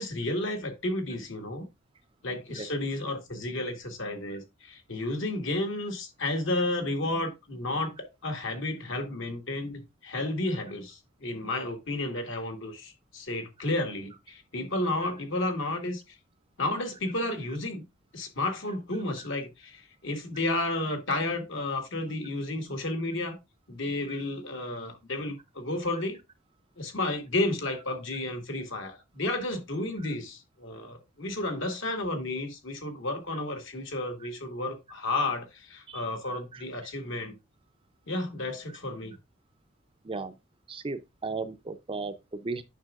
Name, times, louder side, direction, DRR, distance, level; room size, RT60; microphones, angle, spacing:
voice 1, 0.0-1.7 2.2-16.2 16.6-17.8 18.1-23.4 23.7-26.2 26.8-37.4 38.1-39.1, left 2 dB, 65° left, 1.9 m, -32 dB
voice 2, 40.7-42.6, right 3 dB, 25° right, 0.6 m, -35 dB
9.0 x 6.1 x 2.4 m
head